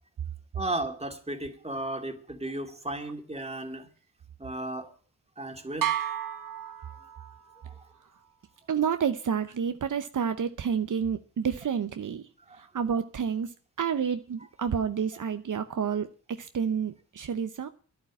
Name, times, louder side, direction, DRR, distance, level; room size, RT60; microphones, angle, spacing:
voice 1, 0.5-3.9 4.4-4.9 5.4-5.9 12.5-12.6, right 1 dB, 20° right, 2.3 m, -34 dB
sound 1, 5.8-7.6, right 10 dB, 85° right, 1.5 m, -32 dB
voice 2, 8.7-12.3 12.6-17.7, right 7 dB, 70° right, 0.8 m, -29 dB
11.0 x 8.6 x 9.7 m
cardioid pair, 60°, 32 cm